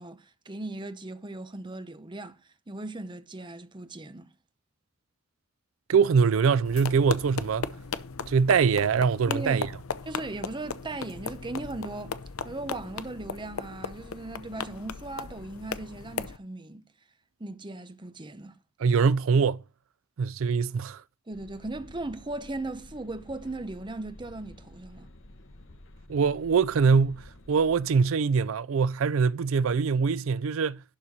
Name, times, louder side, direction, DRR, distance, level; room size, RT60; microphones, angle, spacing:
voice 1, 0.0-2.4 2.7-4.3 9.3-9.6 10.1-12.2 12.4-16.8 17.4-18.6 21.3-25.1, right 2 dB, 20° right, 0.8 m, -38 dB
voice 2, 5.9-7.7 8.3-9.7 18.8-19.6 20.2-21.0 26.1-30.8, right 5 dB, 70° right, 0.4 m, -23 dB
sound 1, 6.6-16.4, left 5 dB, 80° left, 0.6 m, -37 dB
sound 2, 21.3-27.8, left 1 dB, 60° left, 1.2 m, -50 dB
11.5 x 4.2 x 6.3 m
head